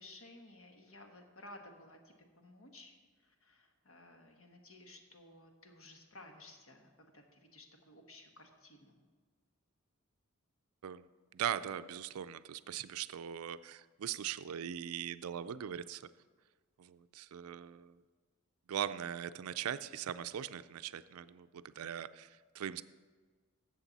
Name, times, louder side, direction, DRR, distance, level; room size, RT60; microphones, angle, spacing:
voice 1, 0.0-9.0, left 2 dB, 70° left, 3 dB, 1.4 m, -56 dB
voice 2, 11.3-16.1 16.8-18.0 18.7-22.8, right 9 dB, 85° right, 14 dB, 0.4 m, -40 dB
13.5 x 7.8 x 4.0 m, 1.5 s
head